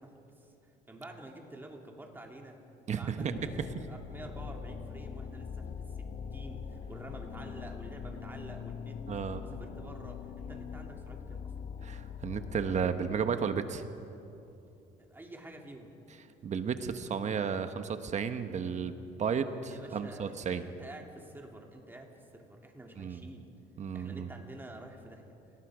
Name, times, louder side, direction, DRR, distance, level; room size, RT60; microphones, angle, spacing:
voice 1, 0.0-2.6 3.0-9.0 9.4-11.5 15.0-15.9 19.7-23.5 23.9-25.3, right 1 dB, 10° right, 1 dB, 2.9 m, -49 dB
voice 2, 2.9-3.5 9.1-9.4 11.8-13.9 16.4-20.6 23.0-23.2 23.8-24.3, right 6 dB, 45° right, 9 dB, 1.2 m, -33 dB
sound 1, 3.3-12.9, left 6 dB, 50° left, 1.3 m, -42 dB
30.0 x 18.5 x 5.0 m, 2.7 s
cardioid pair, 110°, 17 cm